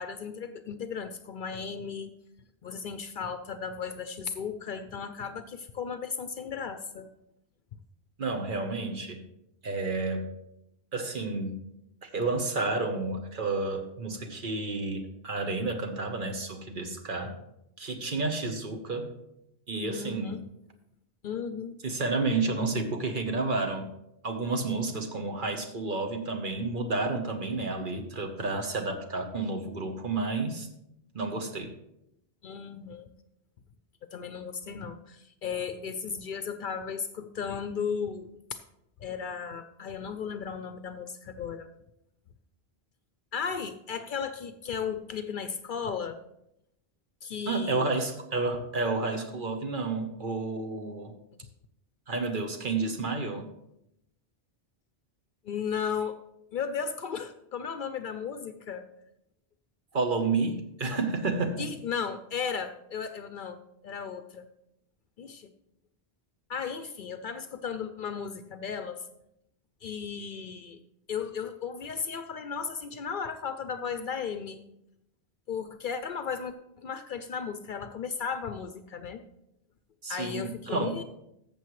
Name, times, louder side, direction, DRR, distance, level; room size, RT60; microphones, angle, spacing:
voice 1, 0.0-2.1 2.6-7.1 19.7-20.4 21.2-21.8 32.4-33.1 34.1-38.6 39.0-41.7 43.3-46.2 47.2-48.0 55.4-56.2 56.5-58.9 61.6-64.4 65.2-65.5 66.5-69.0 69.8-70.8 71.1-74.6 75.5-79.2 80.1-81.0, left 6 dB, 60° left, 10 dB, 0.6 m, -35 dB
voice 2, 8.2-9.2 9.6-10.3 10.9-11.6 12.0-17.4 17.8-19.1 19.7-20.3 21.8-23.9 24.2-30.7 31.1-31.7 47.5-51.1 52.1-53.5 59.9-61.7 80.0-80.9, right 3 dB, 55° right, 4 dB, 1.2 m, -30 dB
14.0 x 7.0 x 3.1 m, 0.81 s
omnidirectional pair, 1.1 m